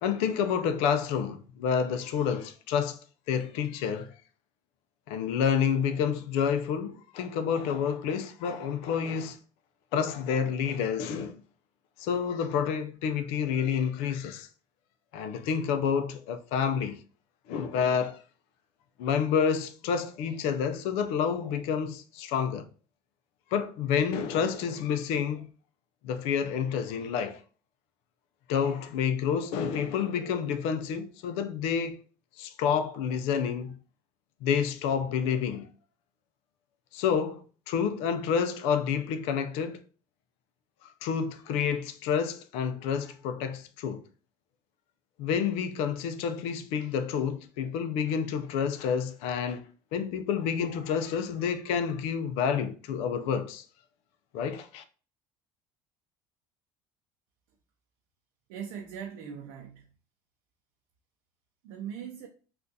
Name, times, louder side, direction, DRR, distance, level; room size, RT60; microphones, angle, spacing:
voice 1, 0.0-3.0 3.3-4.1 5.1-9.4 9.9-11.4 12.0-14.5 15.1-17.0 17.5-18.2 19.0-22.7 23.5-25.5 26.0-27.4 28.5-32.0 32.4-33.7 34.4-35.7 36.9-37.4 37.7-39.8 40.8-44.0 45.2-49.7 49.9-53.6 54.3-54.8, left 7 dB, 75° left, 0.5 m, -29 dB
voice 2, 58.5-59.9 61.6-62.3, right 8 dB, 85° right, 0.6 m, -40 dB
3.6 x 2.5 x 2.7 m
cardioid pair, 130°, 10 cm